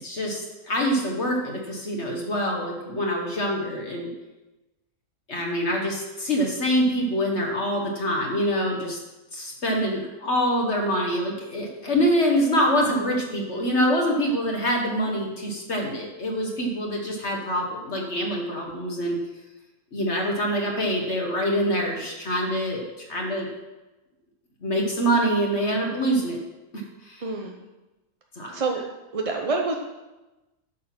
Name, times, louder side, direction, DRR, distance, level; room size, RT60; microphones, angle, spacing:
voice 1, 0.0-4.1 5.3-9.0 9.3-19.2 19.9-23.5 24.6-26.4 26.7-27.2 28.4-28.6, equal, 50° left, 0 dB, 1.6 m, -25 dB
voice 2, 27.2-27.5 28.5-28.8 29.1-29.8, right 3 dB, 30° right, 1 dB, 0.6 m, -26 dB
10.0 x 6.7 x 6.0 m, 1.1 s
omnidirectional pair, 1.6 m